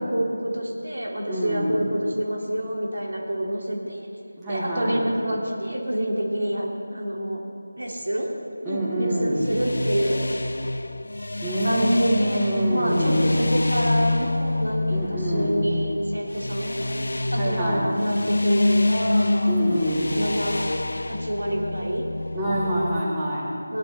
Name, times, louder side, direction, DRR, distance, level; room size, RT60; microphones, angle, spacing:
voice 1, 0.0-4.1 4.5-7.4 7.8-8.3 8.7-10.2 11.6-12.4 12.7-19.5 20.2-20.7 21.1-22.1 23.7-23.8, right 1 dB, 80° right, -1 dB, 2.3 m, -27 dB
voice 2, 1.3-1.8 4.4-5.0 8.6-9.5 11.4-13.3 14.9-15.5 17.4-17.9 19.5-20.2 22.3-23.5, right 1 dB, 15° right, -8 dB, 2.2 m, -25 dB
sound 1, 9.3-23.0, left 2 dB, 70° left, 0.5 m, -26 dB
17.5 x 10.5 x 4.0 m, 2.7 s
figure-of-eight pair, 165°, 0 cm